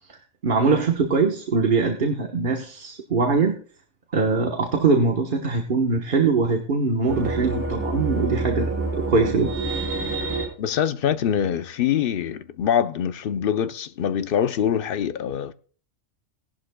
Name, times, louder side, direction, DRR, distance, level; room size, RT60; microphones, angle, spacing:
voice 1, 0.4-3.5 4.1-9.5, right 4 dB, 40° right, 1.2 m, -22 dB
sound 1, 7.1-10.4, right 3 dB, 10° right, 3.2 m, -27 dB
voice 2, 10.6-15.5, left 9 dB, 55° left, 0.7 m, -24 dB
17.5 x 11.5 x 2.2 m
omnidirectional pair, 1.4 m